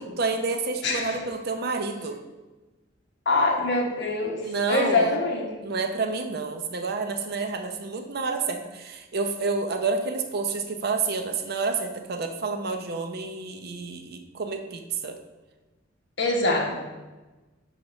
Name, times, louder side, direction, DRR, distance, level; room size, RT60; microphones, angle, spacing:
voice 1, 0.0-2.2 4.4-5.1 5.6-15.2, right 4 dB, 55° right, 6 dB, 0.7 m, -29 dB
voice 2, 0.8-1.2 3.2-5.5 16.2-16.7, left 2 dB, 60° left, 0 dB, 1.3 m, -24 dB
6.4 x 4.5 x 5.3 m, 1.2 s
head